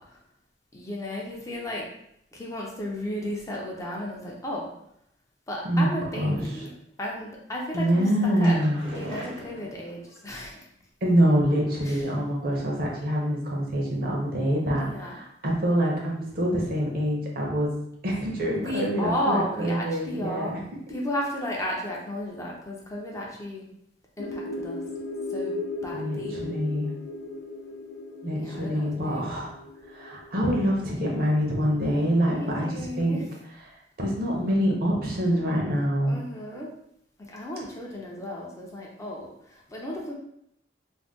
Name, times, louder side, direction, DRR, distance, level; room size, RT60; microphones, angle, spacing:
voice 1, 0.7-1.9 2.3-4.7 5.5-6.7 7.0-8.6 9.0-10.7 11.8-12.0 14.8-15.1 18.5-20.6 20.9-23.7 24.2-24.8 25.3-25.6 25.8-26.4 28.4-29.3 32.3-33.2 36.1-36.7 37.2-40.1, left 1 dB, 15° left, -2 dB, 0.4 m, -34 dB
voice 2, 5.6-6.4 7.7-8.8 11.0-17.7 18.0-20.6 25.9-26.9 28.2-29.6 29.9-33.2 34.0-36.2, equal, 55° right, -2 dB, 0.7 m, -25 dB
sound 1, 8.1-10.2 11.2-12.1 12.5-12.9 13.2-13.3 13.7-13.8, right 1 dB, 70° right, 0.9 m, -41 dB
sound 2, 24.2-31.9, left 2 dB, 90° left, 0.4 m, -37 dB
2.5 x 2.1 x 3.4 m, 0.74 s
head